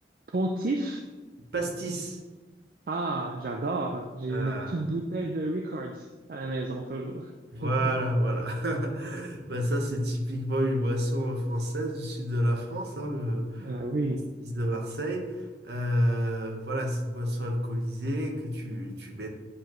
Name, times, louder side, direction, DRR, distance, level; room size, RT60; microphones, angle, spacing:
voice 1, 0.3-1.0 2.9-7.3 7.6-7.9 13.5-14.3, right 2 dB, 50° right, 2 dB, 0.5 m, -31 dB
voice 2, 1.5-2.2 4.3-4.8 7.5-13.7 14.4-19.3, equal, 65° right, 2 dB, 1.1 m, -29 dB
9.8 x 4.7 x 3.0 m, 1.2 s
head